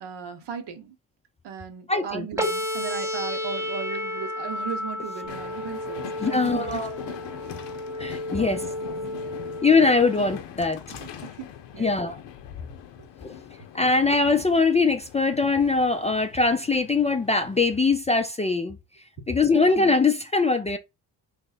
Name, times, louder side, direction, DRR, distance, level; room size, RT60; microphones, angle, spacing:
voice 1, 0.0-0.9 1.4-7.2 8.4-9.2 10.9-12.0 12.6-12.7 13.0-13.1 19.5-19.7, right 7 dB, 60° right, 0.9 m, -37 dB
voice 2, 1.9-2.3 6.2-7.0 8.0-8.6 9.6-10.8 11.8-12.2 13.2-13.3 13.7-18.8 19.3-20.8, left 4 dB, 15° left, 0.4 m, -22 dB
sound 1, 2.4-10.4, left 1 dB, 5° right, 0.7 m, -32 dB
Train, 5.3-17.8, left 9 dB, 70° left, 0.7 m, -42 dB
2.9 x 2.2 x 3.8 m
hypercardioid pair, 45°, 45 cm